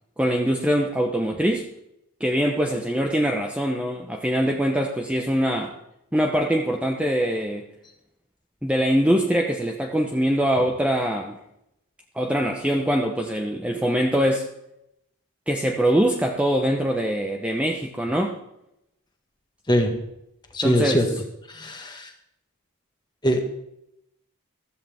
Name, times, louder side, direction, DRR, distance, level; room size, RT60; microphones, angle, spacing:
voice 1, 0.2-1.7 2.2-5.7 6.1-7.6 8.6-11.4 12.1-14.5 15.5-18.3 20.6-21.0, equal, 5° right, 1 dB, 0.9 m, -23 dB
voice 2, 19.7-20.0 20.5-21.1 21.5-22.1 23.2-23.4, equal, 20° left, 4 dB, 1.6 m, -22 dB
15.0 x 13.5 x 3.5 m, 0.82 s
head